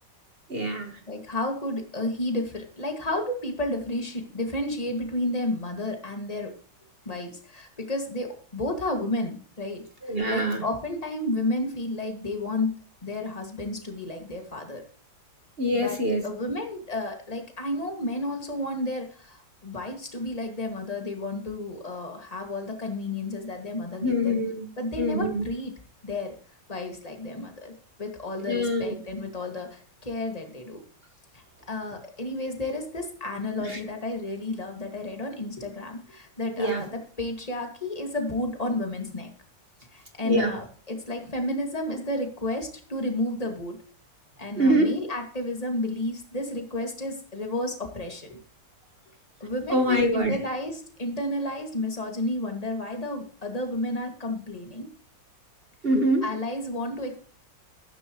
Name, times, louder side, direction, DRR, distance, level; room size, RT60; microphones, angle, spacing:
voice 1, 0.5-1.0 10.0-10.6 15.6-16.2 24.0-24.7 25.0-25.5 28.4-29.0 33.6-33.8 36.6-36.9 40.2-40.6 44.6-45.0 49.7-50.4 55.8-56.3, equal, 35° right, 1.6 m, -24 dB
voice 2, 1.1-6.5 7.1-9.8 10.3-12.7 13.0-14.8 15.7-16.0 16.2-24.4 24.8-25.7 26.0-26.4 26.7-27.7 28.0-30.8 31.3-39.3 39.9-43.8 44.4-48.4 49.4-54.9 56.2-57.2, left 1 dB, 20° left, 2.2 m, -31 dB
14.0 x 13.5 x 3.1 m
omnidirectional pair, 2.0 m